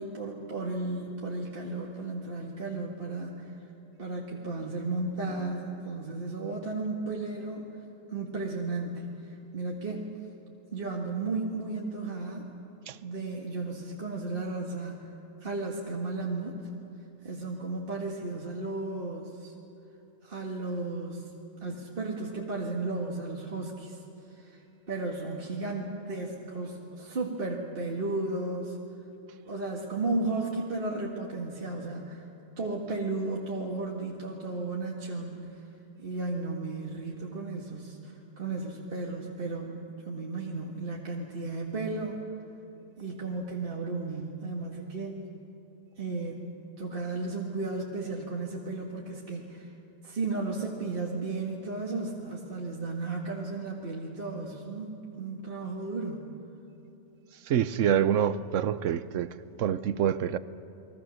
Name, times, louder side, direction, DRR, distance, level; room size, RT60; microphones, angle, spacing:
voice 1, 0.0-3.5 4.0-7.7 8.1-10.1 10.7-12.5 13.0-15.1 15.4-16.6 17.2-19.5 20.2-21.3 21.6-24.0 24.3-24.6 24.9-28.8 29.5-32.3 32.6-35.6 36.0-42.2 43.0-45.2 46.0-49.7 50.0-56.3, right 3 dB, 50° right, 2.0 m, -34 dB
voice 2, 57.4-60.4, right 9 dB, 90° right, 1.1 m, -27 dB
30.0 x 21.5 x 6.4 m
omnidirectional pair, 1.3 m